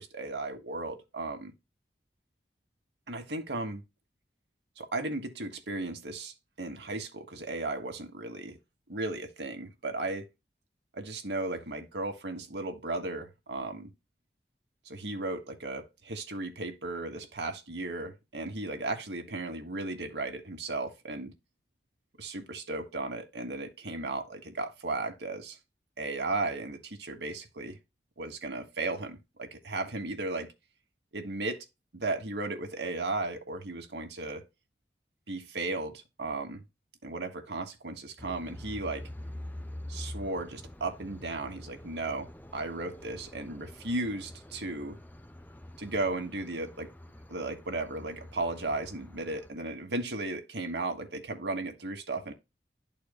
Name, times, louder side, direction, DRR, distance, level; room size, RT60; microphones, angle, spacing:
voice 1, 0.0-1.5 3.1-3.8 4.8-8.6 8.9-10.3 10.9-13.9 14.8-21.3 22.2-25.6 26.0-27.8 28.2-30.5 31.1-31.6 31.9-34.4 35.3-36.6 37.0-39.1 39.9-45.0 45.8-46.9 47.3-52.3, right 2 dB, 80° right, 1.3 m, -35 dB
sound 1, 38.2-49.5, left 1 dB, 10° left, 0.5 m, -46 dB
12.0 x 4.2 x 2.2 m
head